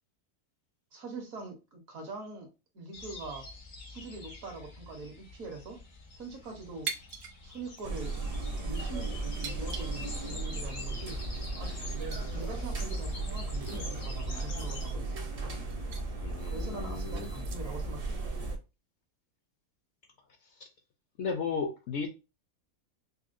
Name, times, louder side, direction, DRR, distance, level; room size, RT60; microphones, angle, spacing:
voice 1, 0.9-2.5 2.7-3.5 3.9-5.8 6.2-6.9 7.4-8.2 8.6-11.8 12.3-15.2 16.5-18.2, right 3 dB, 65° right, 1.5 m, -43 dB
sound 1, 2.9-14.9, left 3 dB, 85° left, 1.7 m, -47 dB
sound 2, 6.9-7.4 7.7-7.8 8.5-8.8 9.4-10.4 10.6-10.8 11.3-11.4 11.8-12.2 12.7-12.8 13.2-15.3 15.7-16.1 16.5-17.8, right 6 dB, 85° right, 1.2 m, -43 dB
sound 3, 7.8-18.6, right 2 dB, 40° right, 0.5 m, -35 dB
voice 2, 16.2-17.3 21.2-22.1, left 5 dB, 65° left, 0.8 m, -34 dB
5.4 x 2.3 x 2.5 m
omnidirectional pair, 1.5 m